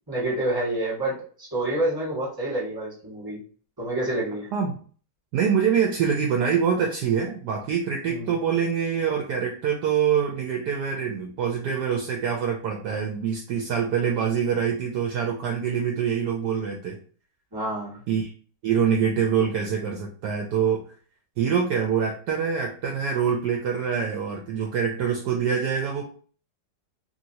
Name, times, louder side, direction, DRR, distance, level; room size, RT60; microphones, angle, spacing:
voice 1, 0.1-3.4 3.8-4.5 8.1-8.3 17.5-18.0, right 1 dB, 15° right, -5 dB, 1.3 m, -28 dB
voice 2, 5.3-17.0 18.1-18.3 18.6-20.8 21.4-26.0, right 7 dB, 70° right, 1 dB, 1.0 m, -25 dB
3.0 x 2.8 x 2.8 m, 0.43 s
omnidirectional pair, 2.0 m